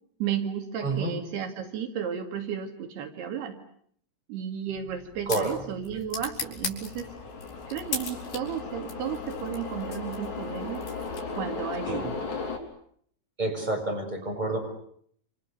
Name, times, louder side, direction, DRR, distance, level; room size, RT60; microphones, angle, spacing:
voice 1, 0.2-3.6 4.3-7.1 7.7-10.8 11.4-12.3, right 8 dB, 80° right, 6 dB, 4.1 m, -33 dB
sound 1, 4.7-11.6, left 5 dB, 70° left, 6.3 m, -39 dB
sound 2, 6.4-12.6, left 4 dB, 45° left, 5.2 m, -36 dB
voice 2, 13.4-14.6, right 2 dB, 10° right, 2 dB, 6.6 m, -28 dB
28.5 x 27.5 x 6.8 m, 0.64 s
omnidirectional pair, 4.6 m